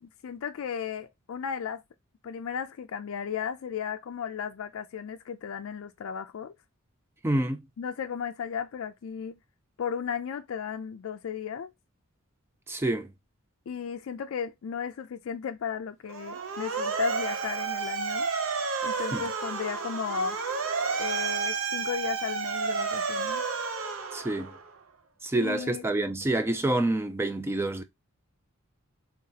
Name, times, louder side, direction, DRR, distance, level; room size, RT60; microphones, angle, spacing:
voice 1, 0.0-1.8 2.2-6.5 7.8-9.4 9.8-11.7 13.7-18.3 18.8-20.4 21.0-23.4 25.3-25.9, left 7 dB, 70° left, 0.4 m, -35 dB
voice 2, 7.2-7.6 12.7-13.1 19.1-19.2 24.1-24.5 25.2-27.8, right 1 dB, 10° right, 0.3 m, -27 dB
Motor vehicle (road) / Siren, 16.1-24.7, right 5 dB, 70° right, 0.7 m, -31 dB
3.5 x 2.8 x 3.8 m
head